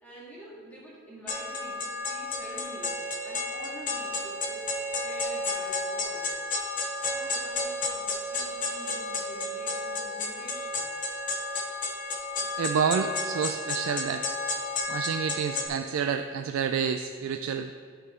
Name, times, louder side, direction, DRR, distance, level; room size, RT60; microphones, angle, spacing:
voice 1, 0.0-4.7 5.0-6.3 7.0-11.0, right 1 dB, 5° left, -7 dB, 2.0 m, -47 dB
sound 1, 1.3-15.7, left 2 dB, 40° left, 0.8 m, -32 dB
voice 2, 12.6-14.2 14.9-17.7, right 6 dB, 75° right, 7 dB, 0.3 m, -29 dB
11.5 x 4.5 x 4.3 m, 2.3 s
head